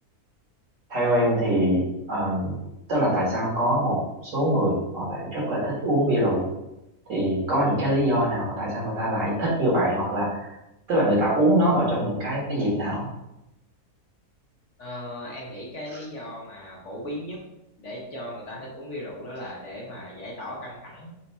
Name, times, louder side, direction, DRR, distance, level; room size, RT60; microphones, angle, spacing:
voice 1, 0.9-2.6 2.9-6.5 7.1-10.5 10.9-13.1, right 1 dB, 55° right, -5 dB, 1.7 m, -23 dB
voice 2, 14.8-17.4 17.8-21.1, left 1 dB, 55° left, -3 dB, 1.1 m, -37 dB
4.5 x 2.6 x 4.0 m, 0.89 s
omnidirectional pair, 1.7 m